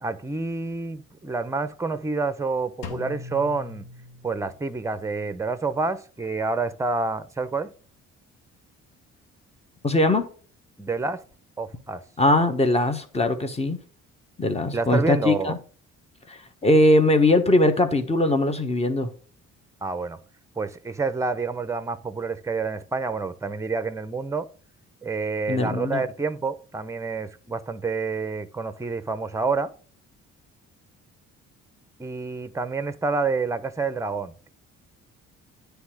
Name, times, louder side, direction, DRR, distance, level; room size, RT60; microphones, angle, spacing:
voice 1, 0.0-3.9 4.2-7.7 10.8-11.2 11.6-12.0 14.7-15.5 19.8-20.2 20.6-24.5 25.0-29.7 32.0-34.5, right 4 dB, 10° right, 0.7 m, -28 dB
Drum, 2.8-4.7, left 4 dB, 85° left, 1.2 m, -39 dB
voice 2, 9.8-10.3 12.2-13.8 14.4-15.6 16.3-19.1 25.5-26.0, left 1 dB, 20° left, 1.3 m, -21 dB
9.5 x 3.5 x 6.2 m
cardioid pair, 90°, 30 cm